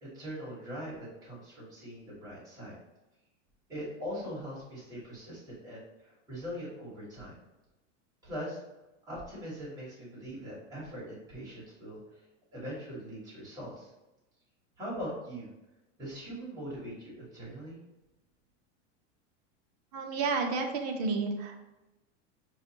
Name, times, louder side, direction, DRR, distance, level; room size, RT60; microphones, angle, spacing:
voice 1, 0.0-2.8 3.7-7.3 8.2-8.6 9.1-12.2 12.5-13.9 14.8-15.5 16.0-17.8, equal, 10° right, -7 dB, 1.1 m, -41 dB
voice 2, 19.9-21.6, right 4 dB, 35° right, 2 dB, 0.4 m, -31 dB
5.8 x 2.3 x 2.7 m, 1.0 s
supercardioid pair, 175°, 36 cm